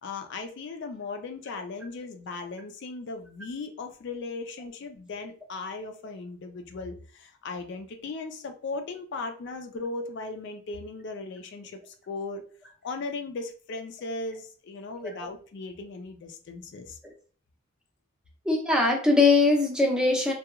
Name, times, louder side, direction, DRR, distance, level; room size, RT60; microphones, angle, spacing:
voice 1, 0.0-12.4 12.8-17.0, left 3 dB, 60° left, 6 dB, 0.4 m, -37 dB
voice 2, 18.5-20.3, left 3 dB, 5° right, 0 dB, 0.5 m, -21 dB
2.8 x 2.3 x 2.3 m, 0.42 s
head